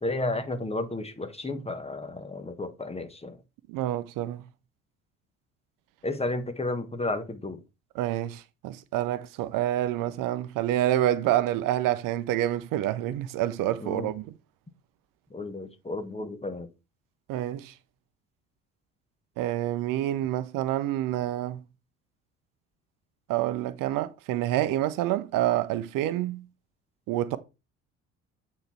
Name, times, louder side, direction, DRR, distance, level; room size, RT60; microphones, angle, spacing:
voice 1, 0.0-3.4 6.0-7.6 13.8-14.1 15.3-16.7, left 2 dB, 15° left, 1.4 m, -32 dB
voice 2, 3.7-4.4 7.9-14.3 17.3-17.7 19.4-21.6 23.3-26.4 27.1-27.4, right 13 dB, 60° right, 0.7 m, -27 dB
8.7 x 4.2 x 4.4 m
hypercardioid pair, 60°, 37 cm